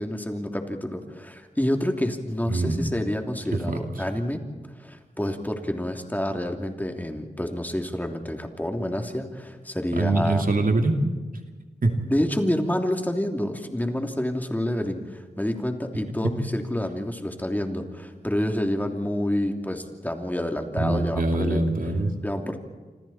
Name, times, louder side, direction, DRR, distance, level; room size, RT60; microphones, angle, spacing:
voice 1, 0.0-4.5 4.8-10.5 12.1-21.6 22.2-22.6, left 1 dB, 10° left, 4 dB, 3.1 m, -28 dB
voice 2, 2.5-2.8 3.5-3.8 10.0-11.0 11.8-12.0 16.2-16.3 20.8-22.1, right 2 dB, 60° right, 4 dB, 2.6 m, -23 dB
28.0 x 26.5 x 4.4 m, 1.3 s
wide cardioid pair, 80°, 16 cm